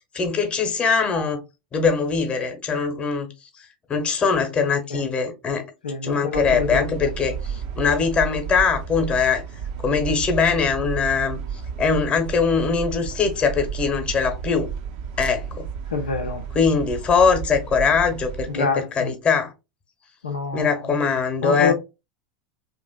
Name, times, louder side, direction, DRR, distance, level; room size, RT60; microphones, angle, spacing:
voice 1, 0.1-1.4 1.7-3.3 3.9-5.6 6.0-9.4 9.8-14.7 15.2-15.6 16.5-19.5 20.5-21.7, left 5 dB, 25° left, 0.8 m, -22 dB
voice 2, 5.8-6.9 15.9-16.4 18.5-19.1 20.2-20.7 21.4-21.7, left 4 dB, 85° left, 0.4 m, -26 dB
sound 1, 6.3-18.6, right 7 dB, 55° right, 0.5 m, -32 dB
2.8 x 2.5 x 2.2 m
figure-of-eight pair, 85°, 4 cm